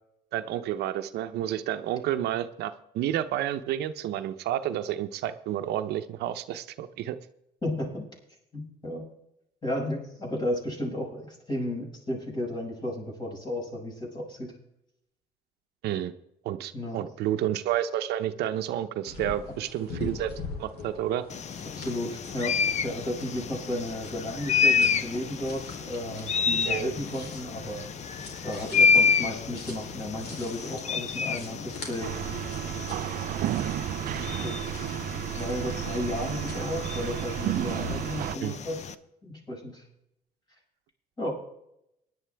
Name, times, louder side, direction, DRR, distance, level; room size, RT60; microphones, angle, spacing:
voice 1, 0.3-7.2 15.8-16.1 16.4-20.3 20.6-21.3 26.6-26.9 38.4-38.6, right 11 dB, 75° right, 9 dB, 0.8 m, -30 dB
voice 2, 7.6-8.1 8.5-9.1 9.6-14.5 16.7-17.0 19.5-19.6 21.7-22.5 22.8-27.8 28.4-32.3 34.4-34.5 35.3-38.8 39.2-39.8 41.2-41.3, left 1 dB, 25° left, -1 dB, 6.1 m, -33 dB
sound 1, 19.1-38.0, left 3 dB, 70° left, 3.8 m, -44 dB
sound 2, 21.3-38.9, left 5 dB, 45° left, 0.8 m, -30 dB
sound 3, 32.0-38.4, right 14 dB, 55° right, 0.4 m, -32 dB
19.0 x 11.0 x 3.5 m, 0.80 s
cardioid pair, 110°, 17 cm